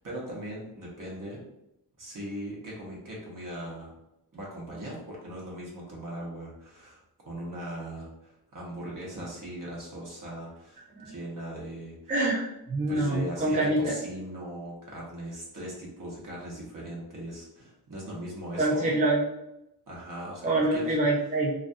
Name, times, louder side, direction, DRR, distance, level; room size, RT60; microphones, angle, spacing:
voice 1, 0.0-1.4 2.0-4.0 4.3-12.1 12.9-18.9 19.9-21.0, right 1 dB, 55° right, -3 dB, 0.9 m, -39 dB
voice 2, 12.1-13.9 18.6-19.2 20.4-21.5, right 2 dB, 20° right, -5 dB, 0.5 m, -26 dB
2.5 x 2.2 x 2.6 m, 0.86 s
wide cardioid pair, 95°, 40 cm